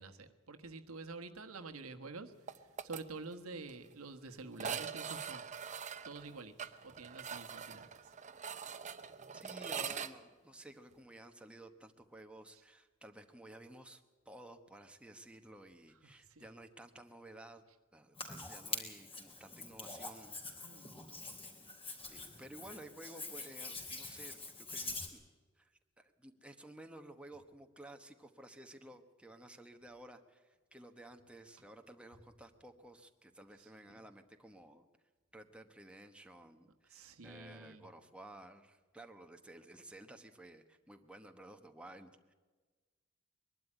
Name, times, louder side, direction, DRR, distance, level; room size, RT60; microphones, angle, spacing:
voice 1, 0.0-2.3 2.8-5.4 6.0-7.9 16.3-16.4 20.6-21.0 33.9-34.0 36.9-37.9, right 3 dB, 80° right, 7 dB, 1.4 m, -48 dB
sound 1, 2.5-3.0 3.3-3.4 3.7-3.8 4.5-10.1, right 7 dB, 35° right, 0.9 m, -43 dB
voice 2, 9.3-17.6 17.9-20.9 22.1-25.2 25.6-34.8 35.3-42.3, right 1 dB, 5° right, 5 dB, 1.1 m, -54 dB
Hands, 18.2-25.1, left 3 dB, 25° left, 3.4 m, -45 dB
22.0 x 12.0 x 10.0 m, 1.3 s
head